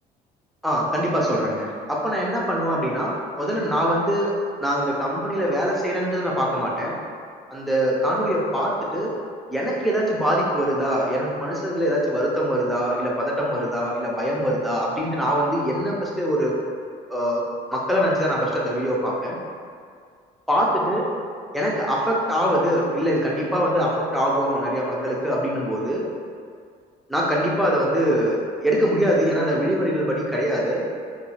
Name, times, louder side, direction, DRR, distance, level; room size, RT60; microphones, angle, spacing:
voice 1, 0.6-7.0 7.5-9.1 9.5-16.6 17.1-17.4 17.7-19.4 20.5-21.0 21.5-26.0 27.1-30.8, equal, ahead, -4 dB, 0.5 m, -23 dB
2.4 x 2.3 x 3.1 m, 2.2 s
cardioid pair, 110°, 17 cm